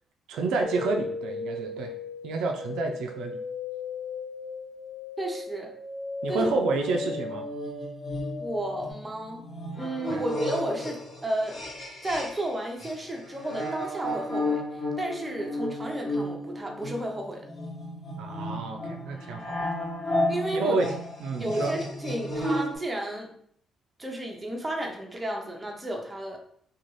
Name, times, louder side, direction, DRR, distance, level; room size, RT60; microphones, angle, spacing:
voice 1, 0.3-1.9 2.2-3.4 6.2-7.5 10.1-10.2 18.2-19.6 20.5-20.9 21.2-21.7, right 3 dB, 85° right, 3 dB, 0.3 m, -29 dB
sound 1, 0.6-8.9, left 4 dB, 75° left, 0.4 m, -36 dB
voice 2, 5.2-5.7 6.3-6.5 8.4-9.4 9.8-11.6 12.0-14.6 15.0-17.5 20.3-20.8 21.4-23.3 24.0-26.4, right 1 dB, 15° right, 0 dB, 0.6 m, -32 dB
sound 2, 6.8-12.5 12.8-22.8, left 1 dB, 45° left, 1.2 m, -33 dB
2.5 x 2.3 x 3.0 m, 0.64 s
cardioid pair, 90°, 0 cm